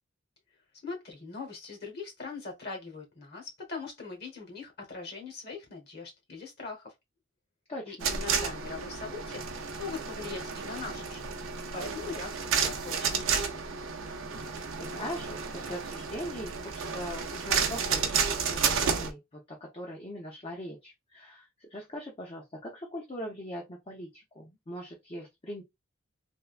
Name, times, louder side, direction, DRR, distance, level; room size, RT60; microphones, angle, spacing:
voice 1, 0.8-6.9 7.9-11.3 11.7-13.6, left 4 dB, 50° left, 1.2 m, -41 dB
voice 2, 7.7-8.1 14.8-25.6, equal, 30° left, 0.6 m, -41 dB
sound 1, 8.0-19.1, right 6 dB, 75° right, 0.5 m, -31 dB
3.4 x 2.2 x 2.4 m
head